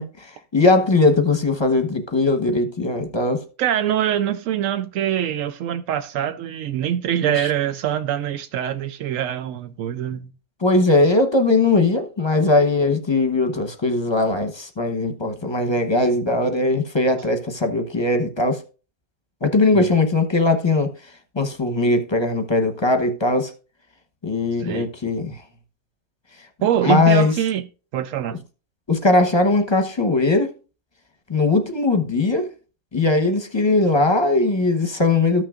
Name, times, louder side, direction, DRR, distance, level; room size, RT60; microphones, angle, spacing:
voice 1, 0.0-3.4 7.4-7.5 10.6-18.6 19.4-20.9 21.3-23.5 24.2-25.4 26.8-27.3 28.9-30.5 31.3-32.5 32.9-35.5, left 2 dB, 25° left, 0.9 m, -19 dB
voice 2, 3.6-10.3 19.7-19.9 24.6-24.9 26.6-27.7 27.9-28.4, right 10 dB, 85° right, 1.0 m, -24 dB
14.0 x 6.1 x 2.4 m
omnidirectional pair, 1.3 m